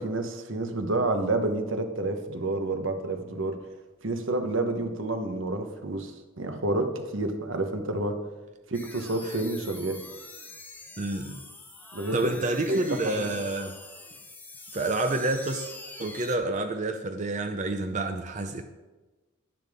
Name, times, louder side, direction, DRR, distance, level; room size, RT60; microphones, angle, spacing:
voice 1, 0.0-3.6 4.0-8.2 8.7-10.0 11.9-13.3, right 2 dB, 65° right, 6 dB, 1.1 m, -29 dB
sound 1, 8.7-16.4, left 2 dB, 10° left, 0.7 m, -44 dB
voice 2, 11.0-11.4 12.1-13.8 14.7-15.7 16.0-18.6, right 2 dB, 35° right, 6 dB, 0.5 m, -28 dB
10.5 x 10.0 x 3.6 m, 1.2 s
head